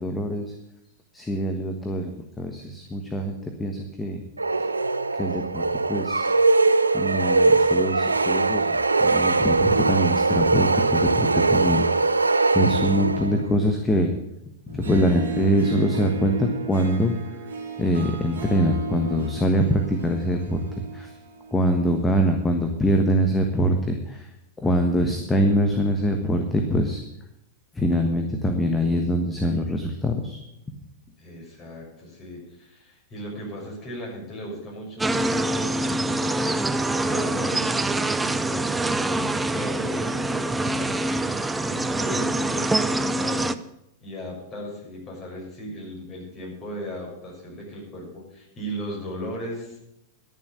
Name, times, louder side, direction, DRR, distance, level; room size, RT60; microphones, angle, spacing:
voice 1, 0.0-0.5 1.1-2.1 2.4-4.2 5.2-5.6 5.9-6.3 6.9-14.1 14.7-17.1 17.8-20.6 20.9-21.1 21.5-24.3 24.6-27.0 27.7-30.4, equal, 10° left, 4 dB, 1.4 m, -24 dB
sound 1, 4.4-13.5, right 3 dB, 85° right, 0.5 m, -21 dB
Harp, 14.7-22.1, right 5 dB, 70° right, 2.2 m, -34 dB
voice 2, 31.2-41.0 41.6-43.5 44.0-49.8, equal, 25° left, -3 dB, 6.4 m, -37 dB
sound 2, 35.0-43.5, right 2 dB, 10° right, 0.6 m, -25 dB
11.5 x 7.2 x 8.3 m, 0.83 s
figure-of-eight pair, 95°, 0 cm